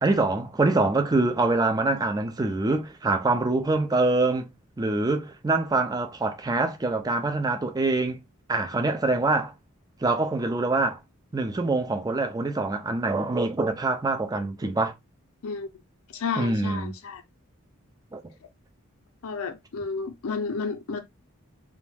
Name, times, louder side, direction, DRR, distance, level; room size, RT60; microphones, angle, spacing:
voice 1, 0.0-4.5 4.8-8.2 8.5-9.5 10.0-11.0 11.3-14.9 16.4-17.0 18.1-18.2, right 2 dB, 15° right, 0.4 m, -25 dB
voice 2, 16.1-17.2 19.2-21.0, left 5 dB, 80° left, 0.5 m, -31 dB
2.3 x 2.1 x 3.2 m
head